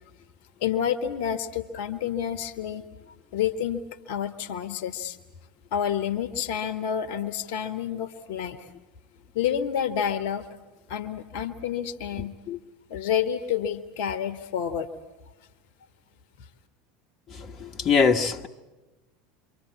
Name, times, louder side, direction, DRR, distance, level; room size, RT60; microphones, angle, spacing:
voice 1, 0.6-2.9 3.3-3.8 4.1-5.2 5.7-8.7 9.3-10.5 10.9-12.3 12.9-14.9, left 9 dB, 60° left, 1.2 m, -29 dB
voice 2, 17.3-18.5, left 5 dB, 35° left, 1.3 m, -23 dB
28.0 x 25.0 x 8.4 m
figure-of-eight pair, 75°, 0 cm